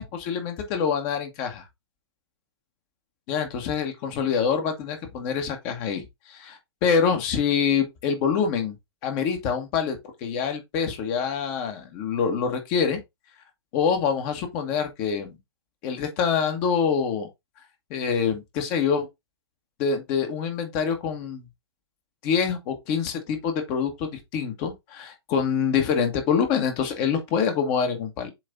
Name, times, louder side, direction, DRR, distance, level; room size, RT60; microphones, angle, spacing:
voice 1, 0.0-1.6 3.3-8.7 9.0-13.0 13.7-15.3 15.8-17.3 17.9-19.1 19.8-21.4 22.2-28.3, left 6 dB, 30° left, 1.5 m, -25 dB
7.7 x 3.3 x 3.8 m
figure-of-eight pair, 120°, 14 cm